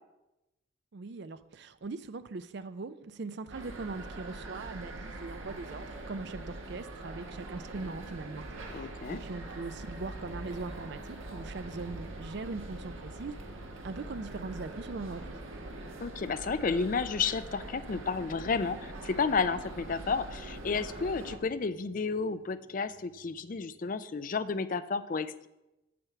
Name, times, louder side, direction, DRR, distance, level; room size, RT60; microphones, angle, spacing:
voice 1, 0.9-8.4 8.7-8.8 9.1-13.3 13.8-15.3, right 3 dB, 55° right, 13 dB, 0.4 m, -40 dB
sound 1, 3.5-21.4, right 2 dB, 75° right, 1.4 m, -43 dB
sound 2, 7.0-24.6, equal, 25° right, 0.9 m, -58 dB
voice 2, 8.7-9.2 16.0-25.5, left 4 dB, 40° left, 13 dB, 0.4 m, -32 dB
8.5 x 7.0 x 5.9 m, 0.96 s
head